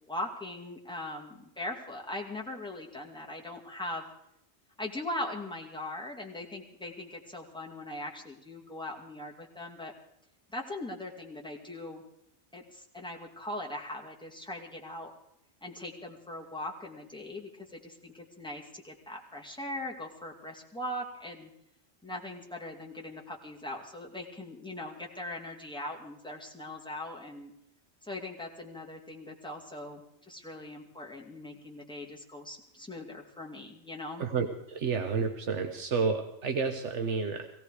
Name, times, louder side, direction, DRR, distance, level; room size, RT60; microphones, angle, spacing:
voice 1, 0.0-4.1 4.8-9.9 10.5-12.0 12.5-15.1 15.6-21.5 22.0-27.5 28.0-34.3, left 1 dB, 5° left, -2 dB, 2.3 m, -40 dB
voice 2, 34.2-37.5, right 5 dB, 80° right, 5 dB, 1.4 m, -30 dB
17.5 x 17.0 x 4.9 m, 0.78 s
omnidirectional pair, 1.2 m